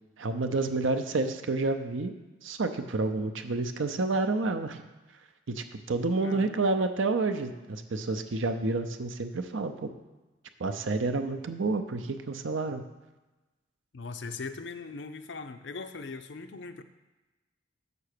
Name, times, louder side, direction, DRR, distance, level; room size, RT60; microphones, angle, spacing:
voice 1, 0.2-2.1 2.4-4.8 5.5-9.9 10.6-12.8, right 3 dB, 75° right, 8 dB, 0.7 m, -29 dB
voice 2, 6.2-6.7 13.9-16.8, left 4 dB, 60° left, 9 dB, 0.5 m, -40 dB
6.8 x 6.0 x 6.6 m, 1.1 s
head